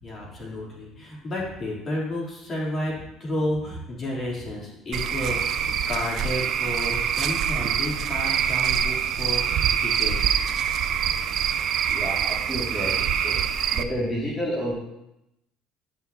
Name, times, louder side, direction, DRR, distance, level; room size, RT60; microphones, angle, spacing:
voice 1, 0.0-10.3, left 1 dB, 40° left, -4 dB, 3.0 m, -32 dB
Cricket / Frog, 4.9-13.8, right 8 dB, 60° right, 0.5 m, -25 dB
voice 2, 11.9-13.4 13.7-14.8, equal, 15° left, -6 dB, 2.2 m, -30 dB
10.5 x 5.8 x 2.7 m, 0.86 s
supercardioid pair, 100°, 0 cm